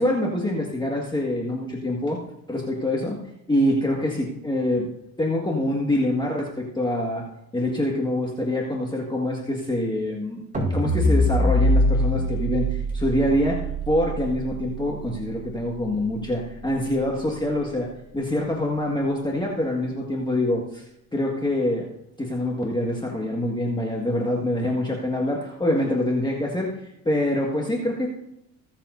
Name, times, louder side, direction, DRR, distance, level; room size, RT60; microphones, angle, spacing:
voice 1, 0.0-2.2 2.5-4.9 5.2-7.2 7.5-20.8 21.1-21.9 22.2-26.8 27.1-28.1, left 1 dB, 10° left, -1 dB, 1.9 m, -25 dB
sound 1, 10.5-16.8, equal, 20° right, 5.0 m, -24 dB
22.0 x 7.4 x 2.7 m, 0.80 s
supercardioid pair, 90°, 36 cm